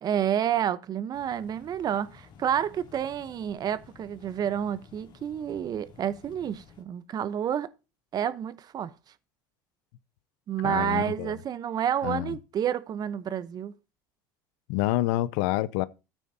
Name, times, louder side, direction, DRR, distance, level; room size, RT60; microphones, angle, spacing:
voice 1, 0.0-7.7 8.1-8.9 10.5-13.7, right 9 dB, 40° right, 0.9 m, -29 dB
sound 1, 1.1-6.8, left 7 dB, 50° left, 2.7 m, -53 dB
voice 2, 10.6-11.3 12.0-12.3 14.7-15.9, left 16 dB, 75° left, 0.6 m, -27 dB
13.5 x 9.2 x 2.8 m
supercardioid pair, 90°, 10 cm